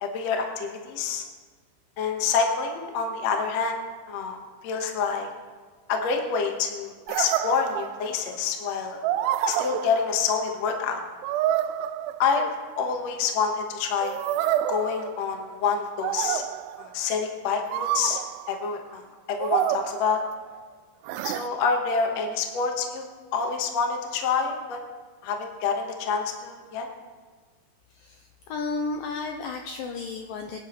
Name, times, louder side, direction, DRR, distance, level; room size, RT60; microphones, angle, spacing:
voice 1, 0.0-1.2 2.0-3.8 4.1-5.3 5.9-9.0 9.5-11.0 12.2-12.5 12.8-14.2 14.7-16.4 16.8-18.2 18.5-20.2 21.2-23.1 23.3-24.8 25.2-26.9, left 5 dB, 60° left, 2 dB, 1.8 m, -27 dB
sound 1, 7.1-8.3 9.0-10.5 11.2-12.7 14.0-15.6 16.0-17.0 17.7-18.6 19.4-20.6 21.1-21.5, right 12 dB, 85° right, 2.6 m, -28 dB
voice 2, 27.9-30.6, left 3 dB, 90° left, 3 dB, 2.0 m, -33 dB
23.5 x 10.5 x 3.1 m, 1.5 s
omnidirectional pair, 4.8 m